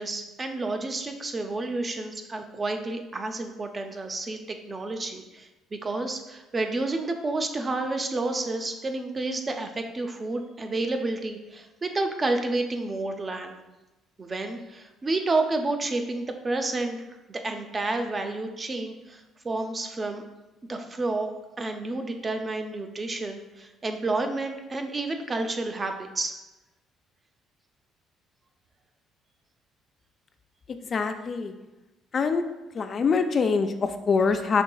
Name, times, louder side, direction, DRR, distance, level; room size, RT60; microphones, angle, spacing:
voice 1, 0.0-13.6 14.2-17.0 17.3-20.2 20.7-21.3 21.6-26.4, right 2 dB, 30° right, 5 dB, 0.5 m, -30 dB
voice 2, 30.9-31.5 32.1-32.4 32.7-34.6, left 5 dB, 45° left, 7 dB, 0.3 m, -24 dB
5.2 x 2.9 x 2.3 m, 1.0 s
supercardioid pair, 65°, 0 cm